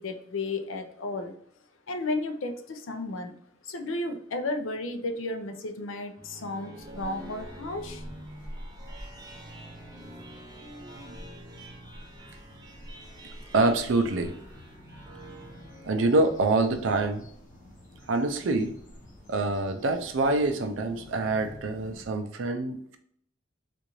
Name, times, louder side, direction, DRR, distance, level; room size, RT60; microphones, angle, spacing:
voice 1, 0.0-1.4 1.9-3.3 3.6-8.1, left 2 dB, 80° left, 6 dB, 0.5 m, -33 dB
sound 1, 5.9-16.8, right 1 dB, 20° right, 0.5 m, -47 dB
sound 2, 6.7-22.1, equal, 40° left, 0.9 m, -48 dB
voice 2, 13.5-14.3 15.8-17.2 18.1-18.7 19.3-23.0, right 2 dB, 70° right, 7 dB, 0.5 m, -25 dB
3.7 x 2.5 x 3.0 m, 0.68 s
head